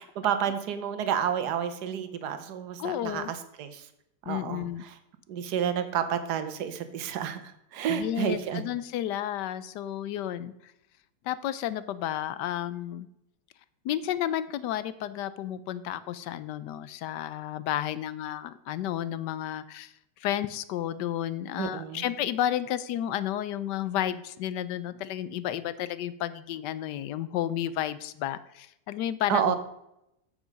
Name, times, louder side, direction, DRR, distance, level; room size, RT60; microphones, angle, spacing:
voice 1, 0.2-3.9 4.3-5.0 5.3-8.6 21.6-22.0 29.3-29.6, right 9 dB, 65° right, 10 dB, 1.4 m, -30 dB
voice 2, 2.8-3.3 4.3-4.8 7.9-10.7 11.2-13.1 13.8-29.5, left 11 dB, 75° left, 15 dB, 1.2 m, -32 dB
8.4 x 7.0 x 5.2 m, 0.82 s
omnidirectional pair, 2.0 m